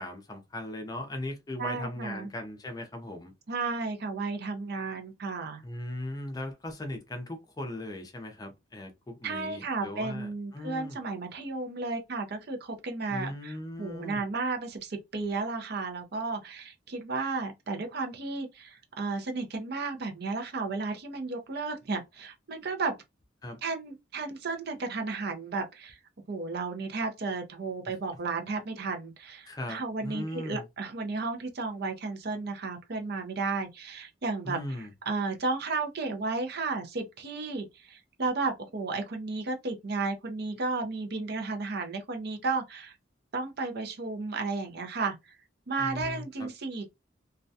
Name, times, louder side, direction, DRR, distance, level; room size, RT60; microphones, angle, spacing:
voice 1, 0.0-3.3 5.6-11.0 13.1-14.3 23.4-23.6 29.5-30.6 34.4-34.9 45.8-46.5, left 1 dB, 20° left, 0.5 m, -38 dB
voice 2, 1.6-2.3 3.5-5.6 9.2-22.9 23.6-26.0 26.3-34.6 35.1-43.0 43.3-45.4 45.7-46.9, right 3 dB, 55° right, 0.6 m, -33 dB
2.3 x 2.2 x 2.6 m
head